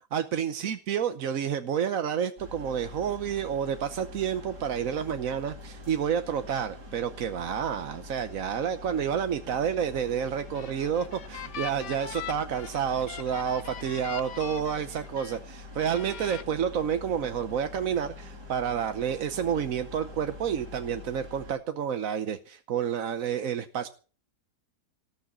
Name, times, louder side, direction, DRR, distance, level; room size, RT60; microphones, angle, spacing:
voice 1, 0.1-23.9, right 8 dB, 60° right, 9 dB, 1.2 m, -29 dB
sound 1, 2.4-21.5, left 2 dB, 75° right, 3.8 m, -45 dB
sound 2, 10.3-15.4 15.8-16.4, left 9 dB, 80° left, 1.6 m, -42 dB
19.0 x 6.3 x 8.7 m, 0.38 s
omnidirectional pair, 1.8 m